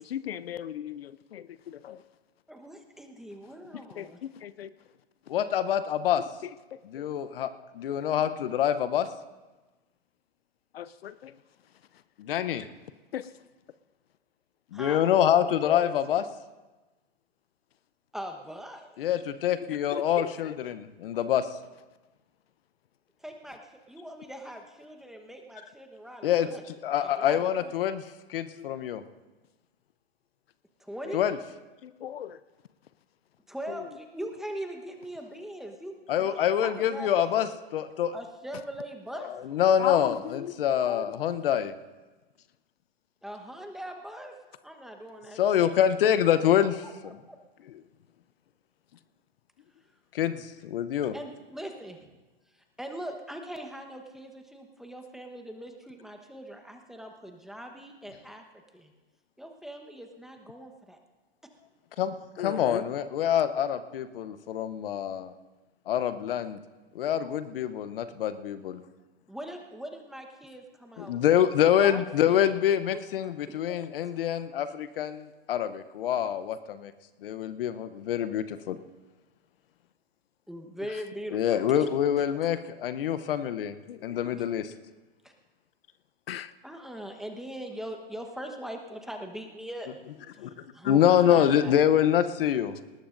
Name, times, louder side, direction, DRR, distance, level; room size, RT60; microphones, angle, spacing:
voice 1, 0.0-2.0 3.7-4.7 6.4-7.1 10.7-11.4 13.1-13.3 15.0-15.4 15.6-15.9 19.6-20.6 28.6-28.7 31.0-31.3 31.8-32.4 33.7-33.9 39.8-40.5 40.8-41.1 62.4-62.8 80.8-81.0 83.9-84.3 86.3-86.5, left 10 dB, 80° left, 16 dB, 0.6 m, -38 dB
voice 2, 2.5-4.2 14.7-15.1 18.1-19.0 23.2-23.6 23.9-26.6 27.0-27.7 30.8-31.2 33.5-36.4 36.6-37.5 38.1-39.3 43.2-44.3 44.6-45.7 46.8-47.4 51.1-52.0 52.5-58.4 58.7-58.9 59.4-61.0 69.3-71.2 71.8-72.0 72.3-73.0 73.5-74.1 80.5-81.8 84.4-84.5 85.2-85.3 86.6-89.9 90.7-91.8, equal, ahead, 3 dB, 1.1 m, -41 dB
voice 3, 5.3-6.2 6.9-7.5 7.7-9.1 12.2-12.7 14.7-16.2 19.0-21.5 26.2-28.0 28.3-29.0 31.1-31.4 36.1-38.1 39.1-41.7 45.4-47.2 50.1-51.1 62.0-62.1 62.4-65.3 65.9-66.6 66.9-68.8 71.0-76.9 77.2-78.8 81.3-83.7 84.0-84.7 90.4-90.5 90.8-92.7, left 10 dB, 65° left, 11 dB, 0.9 m, -26 dB
19.5 x 19.0 x 2.6 m, 1.2 s
hypercardioid pair, 120°, 30 cm